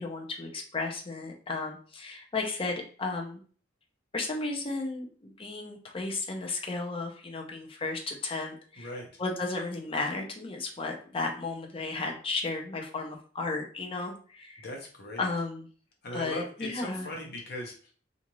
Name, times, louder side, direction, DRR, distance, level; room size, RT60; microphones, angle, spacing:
voice 1, 0.0-3.4 4.1-8.9 9.2-14.7 15.2-15.7 16.1-17.1, left 3 dB, 30° left, 1 dB, 0.5 m, -34 dB
voice 2, 8.8-9.1 14.6-15.3 16.0-17.9, left 1 dB, 55° left, 0 dB, 0.8 m, -39 dB
2.6 x 2.4 x 3.0 m, 0.43 s
head